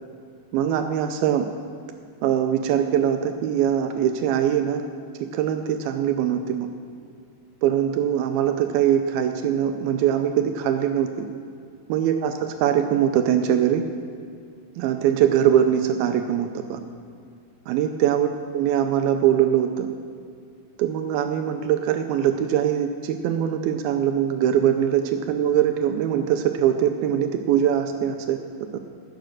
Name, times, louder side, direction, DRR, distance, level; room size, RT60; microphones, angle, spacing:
voice 1, 0.5-1.5 2.2-4.8 5.3-6.7 7.6-11.3 11.9-13.8 14.8-16.8 17.7-19.9 20.8-28.4, right 9 dB, 80° right, 7 dB, 2.3 m, -22 dB
11.5 x 9.6 x 6.3 m, 2.3 s
omnidirectional pair, 4.7 m